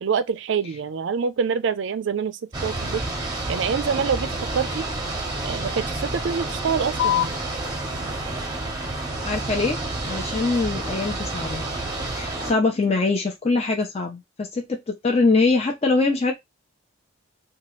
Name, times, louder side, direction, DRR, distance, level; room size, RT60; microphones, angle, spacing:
voice 1, 0.0-3.0 3.5-4.9 5.4-7.3, right 6 dB, 60° right, 0.4 m, -26 dB
sound 1, 2.5-12.5, right 2 dB, 20° right, 0.8 m, -29 dB
sound 2, 7.0-14.0, left 12 dB, 80° left, 0.5 m, -34 dB
voice 2, 9.2-9.8 10.0-11.6 12.1-14.8 15.0-16.3, left 3 dB, 30° left, 0.6 m, -23 dB
2.9 x 2.3 x 3.0 m
head